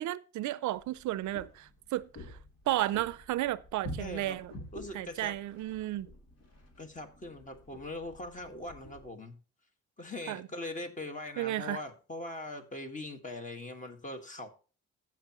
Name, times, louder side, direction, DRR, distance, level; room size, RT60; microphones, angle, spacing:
voice 1, 0.0-2.4 2.7-4.5 4.9-6.1 10.3-10.4 11.4-11.8, right 15 dB, 70° right, 0.5 m, -33 dB
sound 1, 0.7-9.1, equal, 55° left, 3.4 m, -48 dB
voice 2, 4.0-4.4 4.7-5.4 6.8-9.4 10.0-14.5, left 2 dB, 25° left, 1.7 m, -41 dB
15.5 x 6.0 x 3.0 m
cardioid pair, 90°, 30 cm